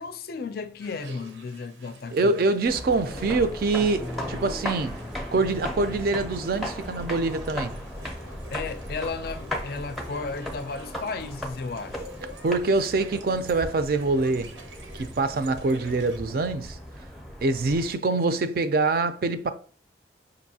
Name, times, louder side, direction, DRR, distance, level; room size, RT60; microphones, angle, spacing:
voice 1, 0.0-2.5 3.0-3.3 8.5-12.0, left 4 dB, 55° left, 0.4 m, -34 dB
sound 1, 0.8-16.2, right 2 dB, 85° right, 0.7 m, -48 dB
voice 2, 2.1-5.0 5.3-7.8 12.4-14.5 14.9-16.8 17.4-19.5, right 3 dB, 55° right, 0.4 m, -25 dB
sound 2, 2.7-17.9, left 1 dB, ahead, 0.6 m, -36 dB
5.3 x 2.6 x 2.7 m
head